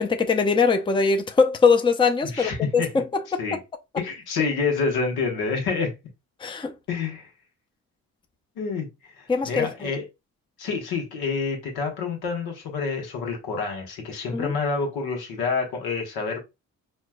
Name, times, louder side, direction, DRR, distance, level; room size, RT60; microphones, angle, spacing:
voice 1, 0.0-3.0 3.3-3.4 6.4-6.7 9.3-9.9 14.3-14.5, left 5 dB, 15° left, 0.5 m, -21 dB
voice 2, 2.3-2.9 3.4-3.6 4.0-5.9 6.9-7.3 8.6-8.9 9.2-10.0 10.6-16.4, left 4 dB, 80° left, 1.2 m, -28 dB
4.3 x 2.3 x 2.2 m
supercardioid pair, 55°, 36 cm